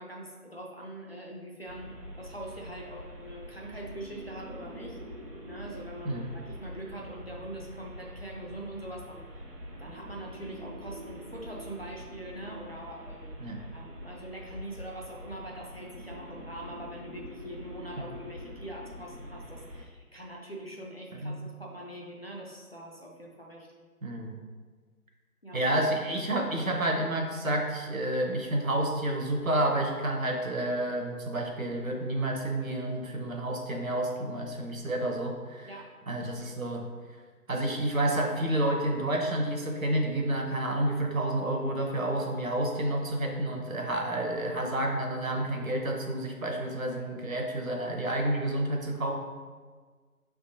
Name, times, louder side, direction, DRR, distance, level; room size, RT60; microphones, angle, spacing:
voice 1, 0.0-5.0 5.5-9.3 9.8-23.7 25.4-25.6 35.6-35.9, right 1 dB, 45° left, -2 dB, 0.5 m, -43 dB
sound 1, 1.7-19.8, equal, 85° right, 0.9 m, -45 dB
voice 2, 24.0-24.3 25.5-35.7 36.1-36.8 37.5-49.1, right 1 dB, 60° right, 2 dB, 0.8 m, -30 dB
5.3 x 3.5 x 2.7 m, 1.5 s
figure-of-eight pair, 155°, 46 cm